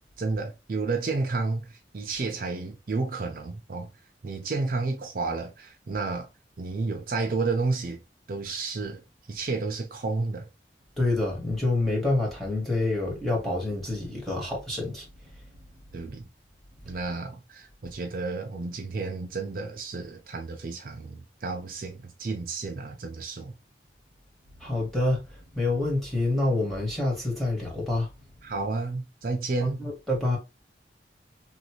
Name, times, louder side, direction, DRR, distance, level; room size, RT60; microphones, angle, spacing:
voice 1, 0.2-3.9 4.2-6.3 6.6-8.0 8.3-10.5 15.9-16.3 16.8-23.5 28.4-29.8, right 3 dB, 50° right, 0.5 m, -31 dB
voice 2, 11.0-15.1 24.6-25.2 25.5-28.1 29.6-30.4, left 2 dB, ahead, 1.3 m, -27 dB
3.0 x 2.6 x 2.9 m
head